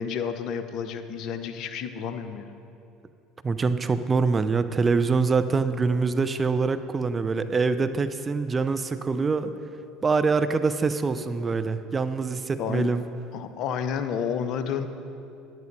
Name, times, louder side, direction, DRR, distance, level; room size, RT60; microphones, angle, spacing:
voice 1, 0.0-2.5 7.3-7.5 12.6-12.9 13.3-14.9, left 7 dB, 60° left, 9 dB, 0.8 m, -30 dB
voice 2, 3.4-9.5 10.0-13.0, right 4 dB, 30° right, 11 dB, 0.6 m, -24 dB
10.5 x 9.5 x 5.4 m, 2.7 s
hypercardioid pair, 70°, 0 cm